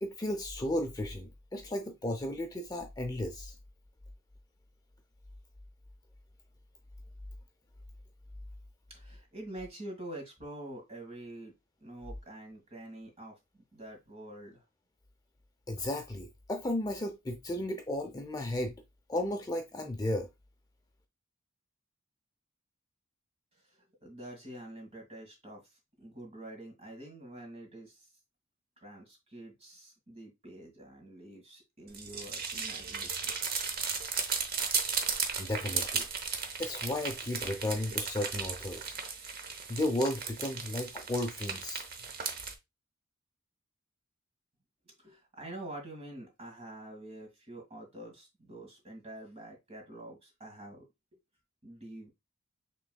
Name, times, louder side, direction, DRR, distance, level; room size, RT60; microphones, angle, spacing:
voice 1, 0.0-3.5 15.7-18.8 19.1-20.3 34.8-34.9 35.4-36.1 36.6-38.8 39.7-41.8, left 1 dB, 20° left, 0.5 m, -34 dB
voice 2, 8.9-11.5 11.8-13.3 13.7-14.6 23.7-28.1 28.8-33.3 44.9-50.9 51.6-52.1, right 1 dB, 30° right, 1.8 m, -46 dB
sound 1, 31.9-42.5, right 5 dB, 50° right, 0.9 m, -35 dB
6.1 x 3.3 x 2.2 m
head